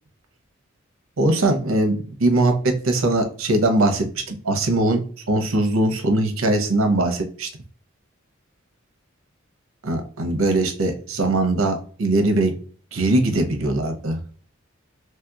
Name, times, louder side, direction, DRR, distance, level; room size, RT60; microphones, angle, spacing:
voice 1, 1.2-5.0 5.3-7.5 9.8-12.6 12.9-14.2, right 2 dB, 75° right, 5 dB, 0.7 m, -21 dB
3.2 x 2.8 x 2.3 m, 0.43 s
head